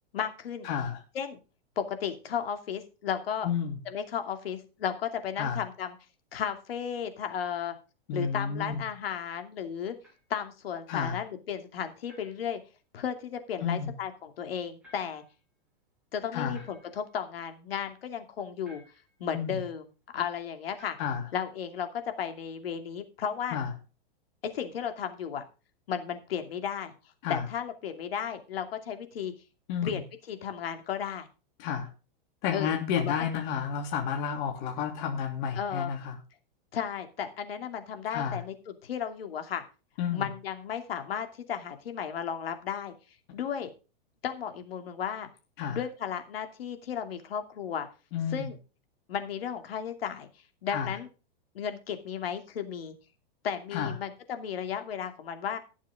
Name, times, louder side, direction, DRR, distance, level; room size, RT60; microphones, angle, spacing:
voice 1, 0.1-0.7 1.1-1.4 1.8-3.5 3.9-5.9 6.3-7.7 8.1-10.0 10.3-12.6 12.9-15.2 16.1-18.8 19.2-19.8 20.1-21.0 21.3-23.6 24.5-25.4 25.9-26.9 27.3-29.3 29.8-30.0 30.3-31.3 32.5-33.1 35.6-35.9 36.7-39.6 40.1-42.9 43.3-43.7 44.2-45.3 45.7-47.9 48.3-48.6 49.1-50.3 50.6-51.1 51.5-52.9 53.4-55.6, left 8 dB, 80° left, 7 dB, 2.6 m, -34 dB
voice 2, 0.6-1.0 3.4-3.8 5.4-5.6 8.1-8.8 10.9-11.2 13.6-13.9 16.3-16.6 19.3-19.6 21.0-21.3 23.5-23.7 27.2-27.5 29.7-30.0 31.6-31.9 32.4-36.2 38.1-38.4 40.0-40.2 45.6-45.8 48.1-48.5 50.7-50.9 53.7-53.9, left 7 dB, 55° left, 2 dB, 2.9 m, -31 dB
sound 1, 8.2-8.5 10.0-10.2 12.1-12.5 14.8-15.4 16.5-17.1 18.6-19.2 20.7-21.3, left 1 dB, 5° right, 5.7 m, -58 dB
17.5 x 7.3 x 3.6 m, 0.32 s
hypercardioid pair, 130°, 29 cm